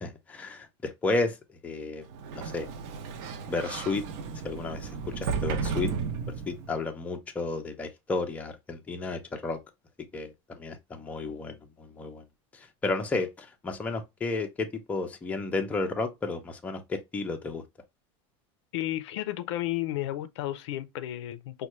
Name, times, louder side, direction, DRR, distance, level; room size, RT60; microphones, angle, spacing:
voice 1, 0.0-1.4 1.6-2.0 2.3-2.7 3.5-4.0 4.4-5.9 6.5-9.6 10.1-12.2 12.5-17.6, left 3 dB, 10° left, 0.5 m, -32 dB
Sliding door, 2.1-6.8, right 5 dB, 50° right, 0.6 m, -34 dB
voice 2, 18.7-21.7, left 14 dB, 85° left, 0.5 m, -32 dB
5.3 x 2.2 x 3.0 m
supercardioid pair, 165°, 14 cm